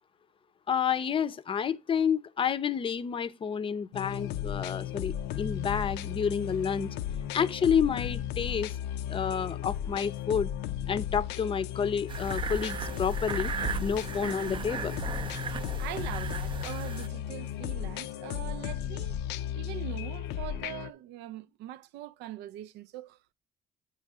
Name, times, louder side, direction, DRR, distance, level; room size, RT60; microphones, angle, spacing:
voice 1, 0.7-6.9 7.3-8.7 9.1-10.5 10.9-13.5 13.8-14.9, left 7 dB, 30° left, 0.5 m, -29 dB
sound 1, 3.9-20.9, left 10 dB, 85° left, 0.5 m, -35 dB
sound 2, 12.1-17.1, right 5 dB, 30° right, 0.4 m, -36 dB
voice 2, 15.8-19.2 19.5-23.2, right 13 dB, 90° right, 0.5 m, -42 dB
8.8 x 3.1 x 4.7 m
cardioid pair, 110°, 17 cm